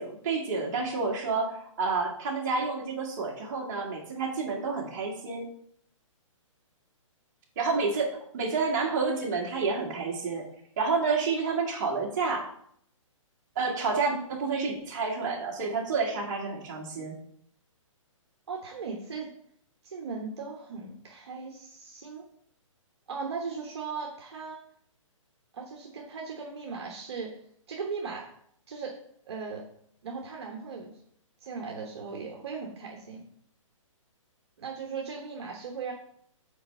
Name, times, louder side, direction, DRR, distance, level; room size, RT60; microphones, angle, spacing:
voice 1, 0.0-5.5 7.5-10.4 10.8-12.5 13.5-17.1, right 4 dB, 35° right, -2 dB, 1.7 m, -29 dB
voice 2, 18.5-19.3 19.8-22.3 23.1-24.6 25.5-27.3 27.7-28.3 28.7-28.9 29.2-29.6 30.0-30.9 31.4-33.2 34.6-35.9, right 5 dB, 50° right, 0 dB, 1.2 m, -37 dB
5.7 x 4.3 x 5.5 m, 0.66 s
hypercardioid pair, 165°, 17 cm